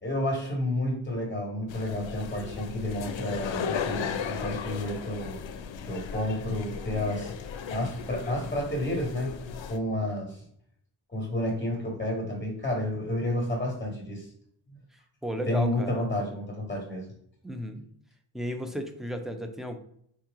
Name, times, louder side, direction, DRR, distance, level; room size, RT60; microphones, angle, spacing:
voice 1, 0.0-5.4 5.9-7.3 7.7-9.4 9.7-10.4 11.1-14.3 14.7-14.8 15.5-17.0, left 1 dB, 20° left, -2 dB, 1.5 m, -30 dB
sound 1, 1.7-9.8, left 7 dB, 75° left, 0.5 m, -36 dB
voice 2, 15.2-16.1 17.4-17.8 18.3-19.8, equal, ahead, 6 dB, 0.4 m, -34 dB
4.7 x 3.0 x 3.5 m, 0.68 s
wide cardioid pair, 105°, 46 cm